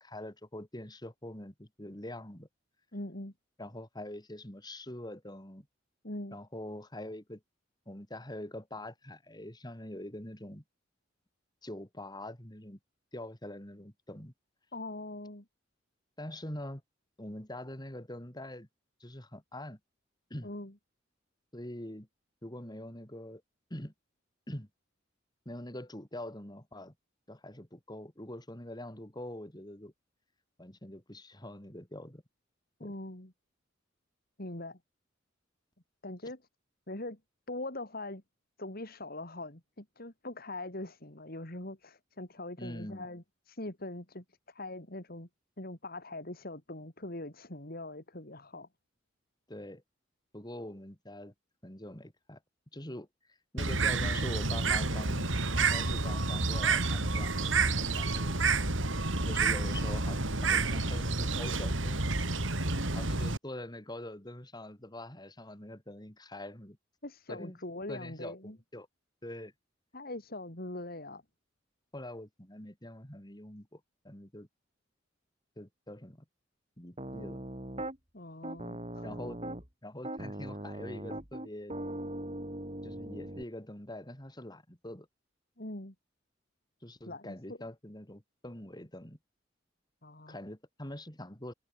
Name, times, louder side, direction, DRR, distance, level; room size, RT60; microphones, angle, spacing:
voice 1, 0.0-2.5 3.6-5.7 6.3-7.4 7.9-10.6 11.6-12.8 13.1-14.3 16.2-16.8 17.2-18.7 19.0-19.8 20.3-20.5 21.5-22.1 22.4-23.4 23.7-23.9 24.5-24.7 25.5-26.9 27.3-29.9 30.6-32.2 32.8-32.9 42.6-43.1 49.5-49.8 50.3-51.3 51.6-52.4 52.7-53.1 53.5-55.3 55.6-58.4 59.2-62.1 62.9-66.8 67.3-67.6 67.9-68.9 69.2-69.5 71.9-74.5 75.6-76.2 76.8-77.4 79.0-79.4 79.8-81.7 82.8-85.1 86.8-89.2 90.3-91.5, left 1 dB, 20° left, 3.8 m, -44 dB
voice 2, 2.9-3.3 6.0-6.4 14.7-15.4 20.4-20.7 32.8-33.3 34.4-34.8 36.0-36.4 36.9-37.2 37.5-38.2 38.6-45.3 45.6-48.7 67.0-68.6 69.9-71.2 78.1-79.1 85.6-85.9 87.1-87.4 90.0-90.4, left 2 dB, 50° left, 3.7 m, -42 dB
Bird, 53.6-63.4, right 3 dB, 80° right, 3.5 m, -29 dB
Piano, 77.0-78.0 78.4-79.7 80.0-83.4, right 1 dB, 30° right, 7.1 m, -40 dB
head